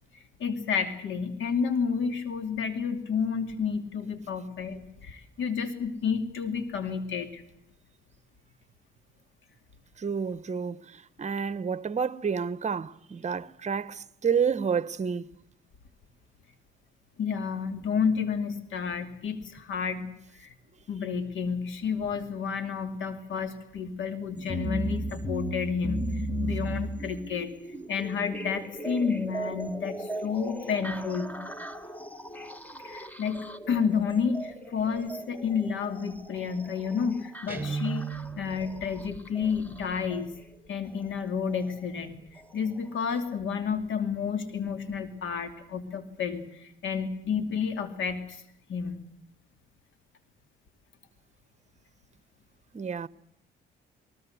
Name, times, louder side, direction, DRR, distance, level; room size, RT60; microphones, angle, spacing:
voice 1, 0.4-7.4 17.2-20.5 20.9-27.5 27.9-31.4 32.8-33.4 33.7-38.1 38.4-40.3 40.7-48.4 48.7-49.0, left 6 dB, 75° left, 2.7 m, -30 dB
voice 2, 10.0-15.3 52.7-53.1, right 6 dB, 35° right, 1.0 m, -30 dB
sound 1, 24.4-40.3 41.5-41.6 42.4-42.5 43.1-43.2, right 1 dB, 10° left, 1.7 m, -37 dB
Guitar, 37.5-38.6, right 5 dB, 10° right, 4.3 m, -33 dB
22.5 x 20.0 x 8.0 m
cardioid pair, 90°, 20 cm